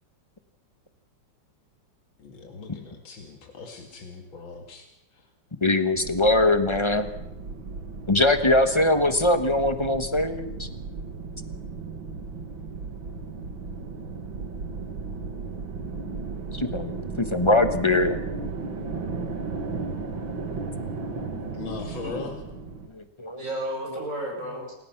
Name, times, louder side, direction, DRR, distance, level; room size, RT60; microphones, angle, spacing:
voice 1, 2.2-4.9 5.1-5.3 21.5-22.4, left 4 dB, 85° left, 2 dB, 2.9 m, -39 dB
voice 2, 5.6-7.1 8.1-10.7 16.5-16.9 17.2-18.2 22.9-23.4 23.9-24.0, left 2 dB, 15° left, 9 dB, 1.1 m, -22 dB
sound 1, 5.9-22.9, right 4 dB, 85° right, 2.8 m, -35 dB
voice 3, 21.3-22.2 23.4-24.7, right 1 dB, 40° right, -1 dB, 8.0 m, -34 dB
28.5 x 16.5 x 6.0 m, 0.90 s
omnidirectional pair, 2.1 m